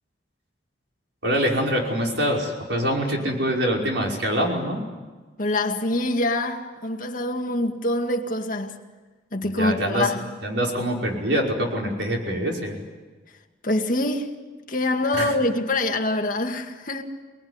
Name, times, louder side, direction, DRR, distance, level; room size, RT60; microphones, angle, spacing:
voice 1, 1.2-4.8 9.4-10.1 10.4-12.8 15.1-15.3, equal, 75° right, 5.4 m, -24 dB
voice 2, 5.4-8.8 9.3-10.3 13.6-14.4 14.7-17.0, left 1 dB, 45° left, 2.1 m, -25 dB
27.5 x 20.5 x 9.7 m
head